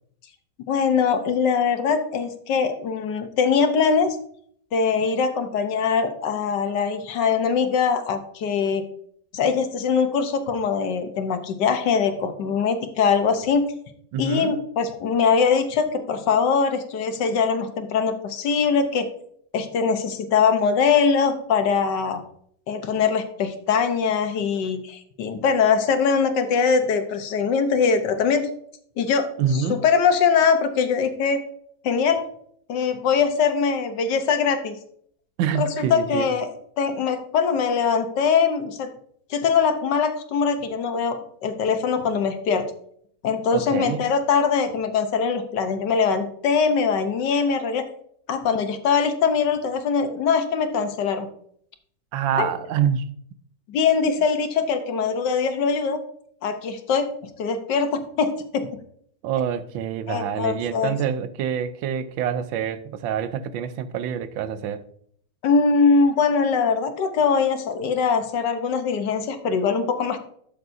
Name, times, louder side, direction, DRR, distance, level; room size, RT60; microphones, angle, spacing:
voice 1, 0.7-4.2 4.7-8.8 9.3-13.6 14.2-19.1 19.5-22.2 22.7-28.4 29.0-29.3 29.5-31.4 31.8-32.2 32.7-34.8 35.5-36.5 36.8-38.9 39.3-42.6 43.2-47.8 48.3-51.3 52.4-52.5 53.7-56.0 56.4-57.1 57.4-58.7 60.1-60.9 65.4-70.2, left 5 dB, 70° left, 1.5 m, -22 dB
voice 2, 14.1-14.6 29.4-29.8 35.4-36.3 43.5-44.1 52.1-53.1 59.2-64.8, right 8 dB, 85° right, 1.4 m, -26 dB
12.0 x 6.9 x 2.6 m
omnidirectional pair, 2.0 m